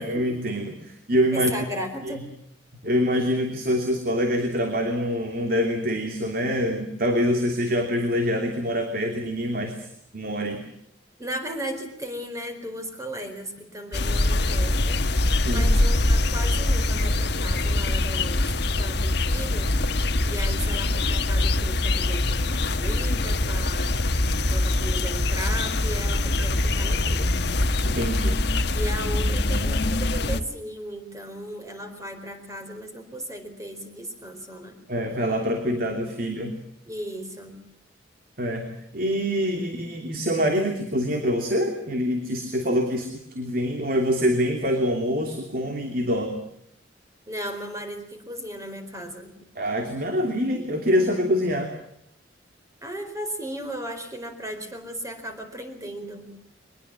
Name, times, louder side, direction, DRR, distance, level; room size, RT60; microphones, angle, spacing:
voice 1, 0.0-1.5 2.0-2.1 2.8-9.7 10.1-10.6 15.4-15.7 27.8-28.5 34.9-36.6 38.4-46.4 49.6-51.7, equal, 50° right, 4 dB, 2.9 m, -25 dB
voice 2, 1.3-2.3 11.2-15.1 15.3-19.7 20.3-23.9 24.5-27.4 28.7-34.8 36.9-37.6 47.3-49.3 52.8-56.3, equal, 15° right, 6 dB, 4.4 m, -36 dB
sound 1, 13.9-30.4, left 2 dB, 60° left, 1.3 m, -23 dB
23.5 x 21.0 x 7.5 m, 0.75 s
head